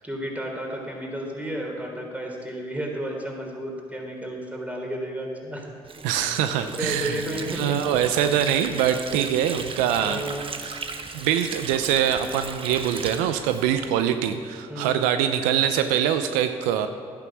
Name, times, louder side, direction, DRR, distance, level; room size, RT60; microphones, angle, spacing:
voice 1, 0.0-5.7 6.8-7.8 10.0-10.6 14.7-15.0, right 1 dB, 10° right, 0 dB, 3.6 m, -32 dB
Water / Sink (filling or washing), 5.8-14.4, right 4 dB, 40° right, 1.1 m, -37 dB
voice 2, 6.0-7.2 7.5-10.2 10.6-10.8 11.1-16.9, right 9 dB, 85° right, 8 dB, 0.6 m, -24 dB
11.5 x 9.1 x 6.1 m, 2.1 s
supercardioid pair, 55°, 14 cm